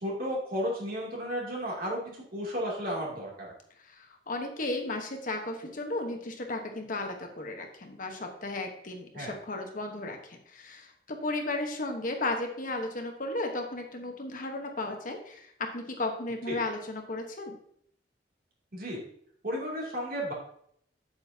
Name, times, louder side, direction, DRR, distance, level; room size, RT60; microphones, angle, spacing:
voice 1, 0.0-3.5 9.1-9.3 16.5-16.6 18.7-19.0 19.4-20.3, equal, 55° right, -3 dB, 2.7 m, -33 dB
voice 2, 3.8-17.5, left 2 dB, 50° left, 4 dB, 1.2 m, -35 dB
8.1 x 8.0 x 2.8 m, 0.66 s
head